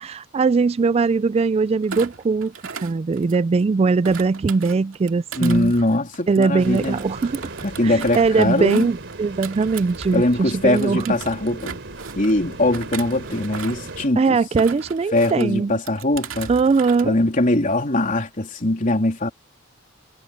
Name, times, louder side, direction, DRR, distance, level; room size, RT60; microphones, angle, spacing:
voice 1, 0.0-2.5 2.8-5.7 6.3-7.5 7.8-11.2 14.2-15.8 16.5-17.2, right 4 dB, 30° right, 0.3 m, -20 dB
Thump thud, 1.8-3.6 4.0-10.4 10.7-12.3 12.7-13.9 14.4-15.5 15.9-17.1 17.4-17.7, right 6 dB, 85° right, 2.3 m, -37 dB
voice 2, 5.4-7.0 7.6-8.9 10.1-11.8 12.2-14.4 15.1-16.5 17.0-19.3, left 1 dB, 40° left, 3.4 m, -21 dB
sound 1, 6.6-14.1, right 2 dB, 65° right, 3.2 m, -37 dB
head